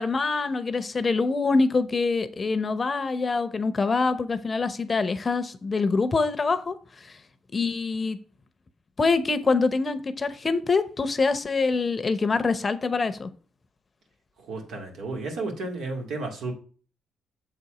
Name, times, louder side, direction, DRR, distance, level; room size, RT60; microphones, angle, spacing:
voice 1, 0.0-6.8 7.0-7.2 7.5-8.2 9.0-13.3, left 4 dB, 30° left, 11 dB, 0.7 m, -25 dB
voice 2, 14.5-16.5, right 3 dB, 75° right, 2 dB, 2.2 m, -32 dB
7.2 x 4.1 x 4.9 m, 0.40 s
cardioid pair, 90°, 0 cm